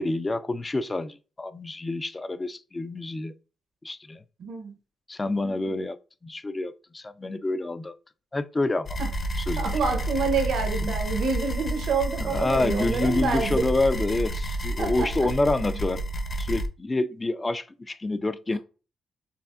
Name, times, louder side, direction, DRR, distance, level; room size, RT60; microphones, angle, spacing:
voice 1, 0.0-3.3 3.8-4.2 5.1-6.0 6.2-8.0 8.3-9.0 9.4-9.7 10.8-10.9 12.2-16.0 16.4-18.6, left 2 dB, 20° left, 0.3 m, -27 dB
voice 2, 4.4-4.8 5.3-5.7 9.0-9.1 9.6-13.7 14.8-15.3, right 4 dB, 70° right, 0.8 m, -28 dB
sound 1, 8.9-16.7, right 1 dB, 40° left, 0.7 m, -30 dB
5.6 x 2.5 x 2.5 m
cardioid pair, 120°, 0 cm